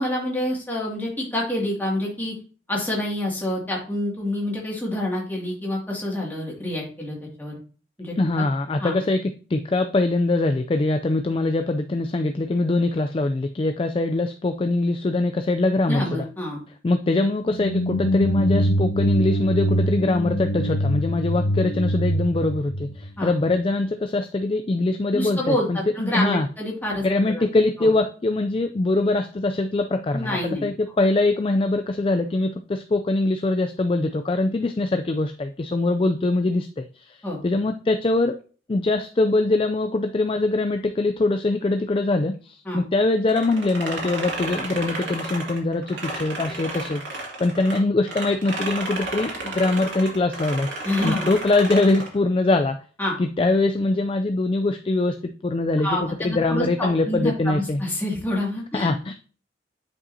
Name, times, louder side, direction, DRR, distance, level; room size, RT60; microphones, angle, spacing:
voice 1, 0.0-2.3 2.7-7.6 8.0-8.4 8.8-8.9 15.9-16.6 23.2-23.3 25.1-27.4 27.8-27.9 30.1-30.7 37.2-37.4 42.7-42.8 50.8-51.3 53.0-53.2 55.8-58.9, left 1 dB, 10° left, -3 dB, 2.2 m, -27 dB
voice 2, 8.2-9.2 9.5-16.3 16.8-26.5 27.0-37.2 37.4-38.4 38.7-52.8 53.2-57.8 58.7-59.1, left 2 dB, 30° left, 7 dB, 0.3 m, -23 dB
sound 1, 17.5-23.6, equal, 80° left, 1.2 m, -24 dB
sound 2, 43.3-47.8 48.1-52.2, right 2 dB, 80° right, 2.4 m, -32 dB
9.8 x 5.2 x 2.7 m, 0.40 s
head